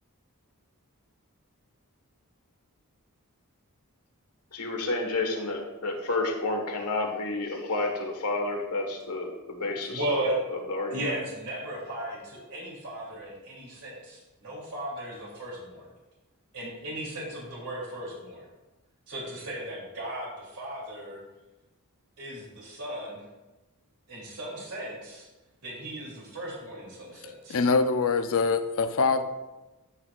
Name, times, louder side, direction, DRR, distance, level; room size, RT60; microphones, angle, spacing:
voice 1, 4.5-10.2 10.5-11.1, left 2 dB, 85° left, 2 dB, 1.5 m, -30 dB
voice 2, 9.6-10.4 10.9-15.9 16.5-18.5 19.1-21.2 22.2-23.2 24.1-25.3 25.6-27.7, right 1 dB, 85° right, -5 dB, 2.9 m, -36 dB
voice 3, 27.5-29.2, left 4 dB, 65° left, 9 dB, 0.6 m, -24 dB
12.0 x 6.2 x 2.4 m, 1.1 s
head